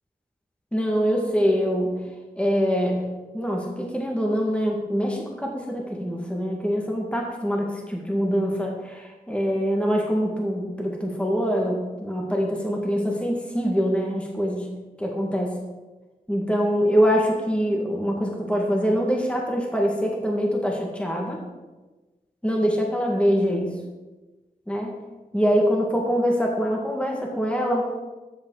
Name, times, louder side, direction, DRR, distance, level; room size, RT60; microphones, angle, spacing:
voice 1, 0.7-1.9 2.4-3.0 3.3-14.7 15.0-15.6 16.3-21.4 22.4-23.7 24.7-24.9 25.3-27.8, equal, 10° left, -1 dB, 2.0 m, -24 dB
12.5 x 8.1 x 4.1 m, 1.2 s
cardioid pair, 50°, 15 cm